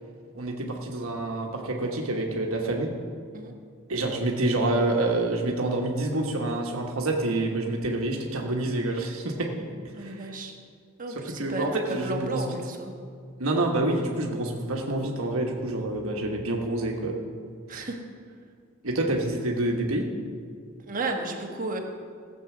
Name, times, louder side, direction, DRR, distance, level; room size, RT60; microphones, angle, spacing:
voice 1, 0.3-2.9 3.9-9.7 10.0-10.2 11.2-12.5 13.4-17.2 17.7-17.9 18.8-20.1, right 2 dB, 75° right, 1 dB, 1.4 m, -27 dB
voice 2, 9.9-10.6 11.0-12.9 17.7-18.0 20.9-21.8, right 2 dB, 40° right, 2 dB, 1.5 m, -33 dB
15.5 x 7.8 x 6.1 m, 2.1 s
head